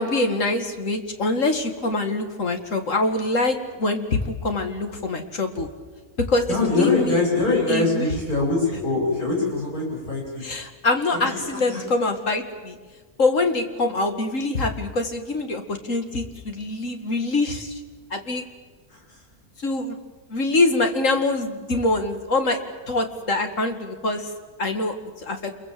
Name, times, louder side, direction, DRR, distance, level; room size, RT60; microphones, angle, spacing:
voice 1, 0.0-5.7 6.2-7.2 7.7-8.1 10.4-12.8 13.2-17.8 18.1-18.4 19.6-20.0 20.3-22.6 22.9-24.3 24.6-25.5, left 2 dB, 60° left, 6 dB, 2.4 m, -24 dB
voice 2, 6.5-10.2 11.1-11.4 11.7-11.8, left 3 dB, 80° left, -3 dB, 8.1 m, -23 dB
28.0 x 22.5 x 7.7 m, 1.3 s
omnidirectional pair, 1.6 m